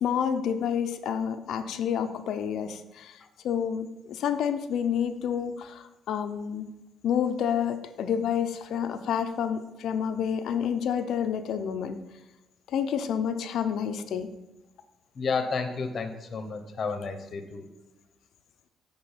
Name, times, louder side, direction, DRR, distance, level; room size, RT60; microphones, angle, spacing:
voice 1, 0.0-3.2 3.4-6.7 7.0-12.0 12.7-14.3, left 8 dB, 75° left, 9 dB, 0.5 m, -29 dB
voice 2, 15.2-17.7, left 4 dB, 45° left, 7 dB, 0.8 m, -31 dB
7.8 x 3.7 x 5.6 m, 1.0 s
cardioid pair, 90°, 0 cm